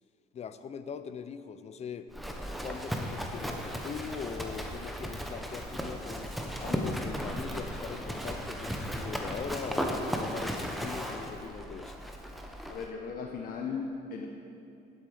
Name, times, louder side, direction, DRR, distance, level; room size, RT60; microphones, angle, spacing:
voice 1, 0.3-2.1 2.6-6.3 6.6-12.0, left 7 dB, 40° left, 12 dB, 0.5 m, -41 dB
Livestock farm animals working animals, 2.1-12.9, equal, ahead, 0.9 m, -36 dB
voice 2, 12.7-14.3, left 5 dB, 60° left, 1 dB, 0.9 m, -37 dB
10.5 x 8.3 x 4.9 m, 2.7 s
cardioid pair, 110°, 17 cm